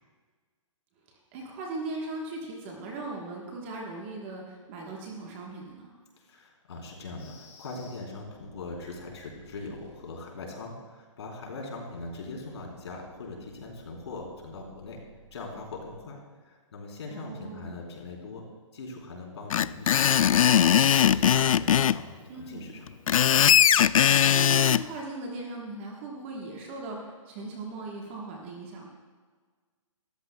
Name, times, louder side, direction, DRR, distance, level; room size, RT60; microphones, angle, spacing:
voice 1, 1.3-5.9 17.1-17.8 22.3-22.8 24.0-28.9, right 2 dB, 20° right, -1 dB, 1.3 m, -38 dB
voice 2, 6.2-15.0 15.3-16.2 16.5-18.4 18.7-22.9, left 3 dB, 55° left, -1 dB, 3.7 m, -41 dB
sound 1, 7.2-10.2 11.7-16.0, equal, 10° left, 2.8 m, -57 dB
Screech, 19.5-22.0 22.9-24.8, left 9 dB, 90° left, 0.4 m, -20 dB
23.0 x 13.5 x 2.3 m, 1.5 s
hypercardioid pair, 175°, 17 cm